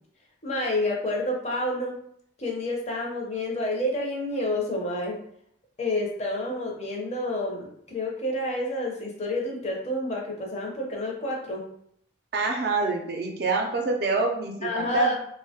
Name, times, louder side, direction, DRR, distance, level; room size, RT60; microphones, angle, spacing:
voice 1, 0.4-1.9 2.4-5.2 5.8-11.6 14.6-15.1, left 1 dB, 35° left, -1 dB, 0.5 m, -29 dB
voice 2, 12.3-15.1, right 3 dB, 55° right, 2 dB, 0.4 m, -26 dB
2.9 x 2.1 x 2.7 m, 0.68 s
head